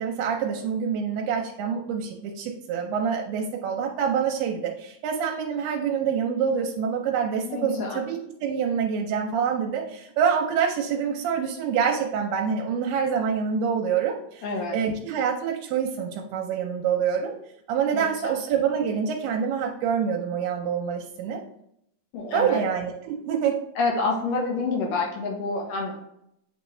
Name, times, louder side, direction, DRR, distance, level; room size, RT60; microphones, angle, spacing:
voice 1, 0.0-14.4 14.7-17.3 17.7-21.4 22.3-23.6, right 7 dB, 85° right, 1 dB, 2.6 m, -26 dB
voice 2, 7.4-8.0 14.4-14.8 17.9-18.4 22.1-22.6 23.8-26.0, left 3 dB, 65° left, -1 dB, 2.6 m, -28 dB
8.9 x 3.5 x 3.2 m, 0.76 s
omnidirectional pair, 4.5 m